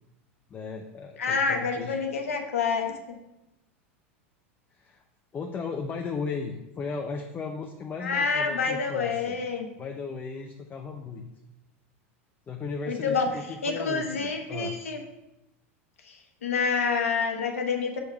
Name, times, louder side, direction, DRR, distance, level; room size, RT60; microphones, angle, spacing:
voice 1, 0.5-1.9 4.8-5.0 5.3-9.4 9.8-11.2 12.5-14.7, left 4 dB, 25° left, 2 dB, 0.6 m, -36 dB
voice 2, 1.2-2.9 8.0-9.7 12.9-13.3 13.6-15.0 16.0-18.0, left 5 dB, 85° left, 4 dB, 0.9 m, -27 dB
6.5 x 3.3 x 5.8 m, 0.95 s
hypercardioid pair, 95°, 7 cm